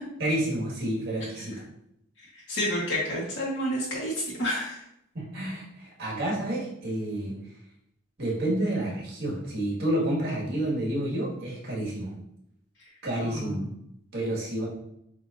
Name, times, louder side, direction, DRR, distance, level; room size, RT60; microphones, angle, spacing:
voice 1, 0.2-1.6 5.1-7.4 8.2-12.2 13.0-13.7 14.1-14.7, right 1 dB, 50° right, -4 dB, 1.8 m, -29 dB
voice 2, 2.3-4.8 13.2-13.6, equal, 65° left, -6 dB, 1.2 m, -30 dB
7.6 x 2.6 x 2.6 m, 0.78 s
head